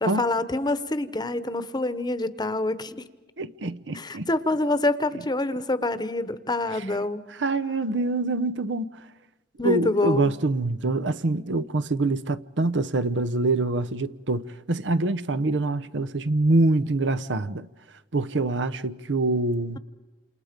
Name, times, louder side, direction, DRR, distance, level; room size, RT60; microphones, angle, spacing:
voice 1, 0.0-3.1 3.9-7.2 9.6-10.3, left 2 dB, 25° left, 1.0 m, -26 dB
voice 2, 3.4-4.3 6.7-6.9 7.3-9.1 9.6-17.7 18.1-19.8, right 2 dB, 80° right, 0.8 m, -25 dB
28.5 x 28.0 x 5.2 m
head